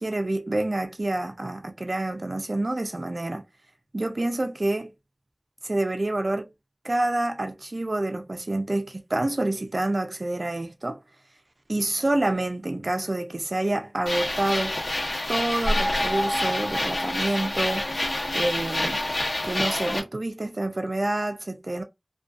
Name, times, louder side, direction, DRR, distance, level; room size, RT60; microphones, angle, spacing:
voice 1, 0.0-3.4 3.9-4.9 5.6-6.5 6.8-11.0 11.7-14.8 15.3-17.8 18.3-19.0 19.4-21.8, right 2 dB, 65° right, 0.4 m, -27 dB
sound 1, 14.1-20.0, left 1 dB, 80° left, 0.8 m, -27 dB
2.3 x 2.2 x 2.5 m
wide cardioid pair, 45°, 0 cm